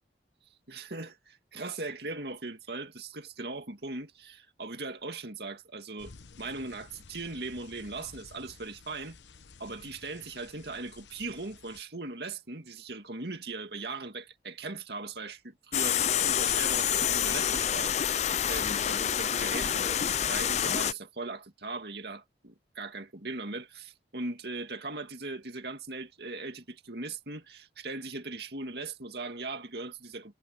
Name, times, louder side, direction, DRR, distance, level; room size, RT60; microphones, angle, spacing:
voice 1, 0.7-6.1 6.4-9.2 9.6-30.3, right 3 dB, 60° right, 2.4 m, -39 dB
sound 1, 6.0-11.8, left 4 dB, 80° left, 1.0 m, -53 dB
sound 2, 15.7-20.9, left 9 dB, 40° left, 0.5 m, -27 dB
head